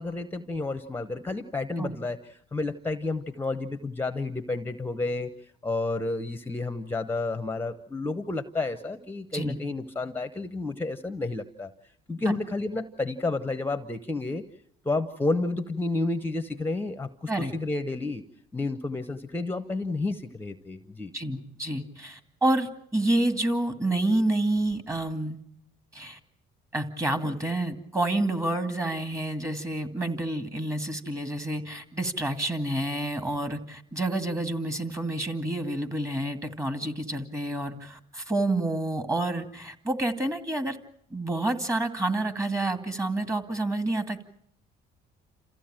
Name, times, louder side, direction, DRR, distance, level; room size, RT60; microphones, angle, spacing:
voice 1, 0.0-2.2 2.5-11.7 12.1-14.4 14.8-18.2 18.5-21.1, left 2 dB, 10° left, 10 dB, 0.9 m, -31 dB
voice 2, 21.1-25.4 25.9-26.2 26.7-40.8 41.1-44.2, right 1 dB, 20° right, 9 dB, 2.3 m, -28 dB
28.5 x 15.0 x 8.9 m, 0.69 s
cardioid pair, 110°, 17 cm